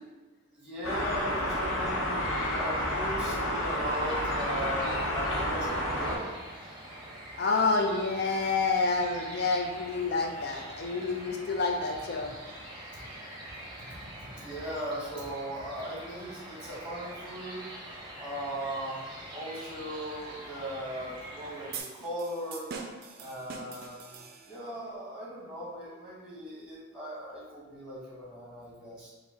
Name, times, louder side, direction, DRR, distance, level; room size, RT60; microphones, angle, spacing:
voice 1, 0.5-2.2 2.6-6.3 13.9-14.0 14.3-17.6 18.2-19.0 19.3-22.8 23.2-24.2 24.5-29.1, right 1 dB, 5° right, -7 dB, 1.3 m, -38 dB
sound 1, 0.8-6.2, left 1 dB, 85° left, 0.8 m, -30 dB
sound 2, 3.6-21.8, right 1 dB, 25° right, 0.8 m, -45 dB
voice 2, 7.4-12.4, left 3 dB, 50° left, 3 dB, 0.5 m, -28 dB
sound 3, 21.7-24.8, right 5 dB, 50° right, 0.4 m, -43 dB
4.8 x 2.2 x 3.8 m, 1.2 s
head